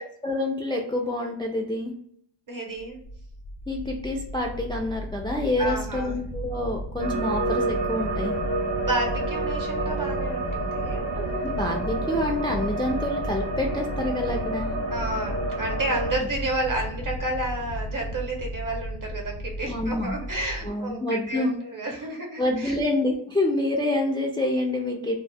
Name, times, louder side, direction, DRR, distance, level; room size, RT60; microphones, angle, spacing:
voice 1, 0.0-1.9 3.7-8.4 11.1-14.7 19.7-20.1 20.6-21.6 22.4-25.2, left 1 dB, 10° left, 0 dB, 0.4 m, -27 dB
voice 2, 2.5-3.0 5.6-6.1 8.8-11.0 11.3-11.4 14.9-22.8, right 2 dB, 45° right, 1 dB, 0.9 m, -31 dB
sound 1, 2.8-20.7, equal, 85° left, 0.7 m, -35 dB
sound 2, 7.0-16.1, right 2 dB, 80° right, 0.7 m, -29 dB
2.2 x 2.1 x 3.3 m, 0.67 s
wide cardioid pair, 75°, 45 cm